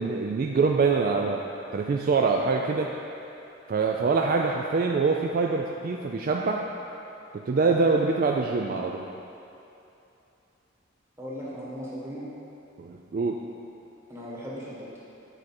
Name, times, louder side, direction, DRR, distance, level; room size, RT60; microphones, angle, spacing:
voice 1, 0.0-1.4 1.7-2.9 3.7-6.6 7.3-9.0 12.8-13.4, right 4 dB, 45° right, 1 dB, 0.3 m, -24 dB
voice 2, 11.2-12.2 14.1-15.0, equal, 15° right, -7 dB, 1.4 m, -37 dB
8.8 x 4.7 x 4.3 m, 2.8 s
head